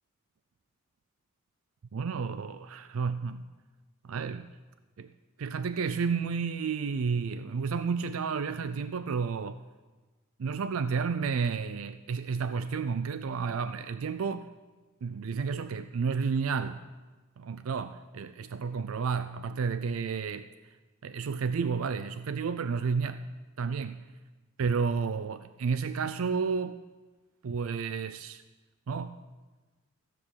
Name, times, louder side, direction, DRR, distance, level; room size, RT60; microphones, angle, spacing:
voice 1, 1.9-3.4 4.1-4.5 5.0-5.1 5.4-9.6 10.4-14.5 15.0-16.8 17.4-20.5 21.0-23.2 23.6-24.0 24.6-26.8 27.4-28.4 28.9-29.2, right 5 dB, 90° right, 12 dB, 0.4 m, -31 dB
15.0 x 7.7 x 6.3 m, 1.2 s
head